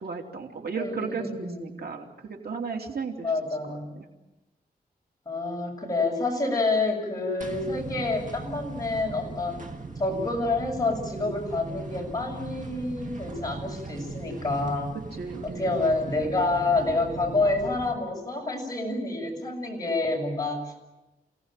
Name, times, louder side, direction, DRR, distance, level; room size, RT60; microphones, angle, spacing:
voice 1, 0.0-3.3 3.7-4.1 15.1-15.8, right 5 dB, 80° right, 2 dB, 3.0 m, -35 dB
voice 2, 0.7-1.8 3.2-3.9 5.3-9.6 10.0-14.9 15.4-20.8, left 3 dB, 25° left, 0 dB, 7.1 m, -28 dB
sound 1, 7.4-18.0, right 3 dB, 55° right, 1.9 m, -39 dB
28.5 x 17.5 x 9.1 m, 1.0 s
wide cardioid pair, 125°, 16 cm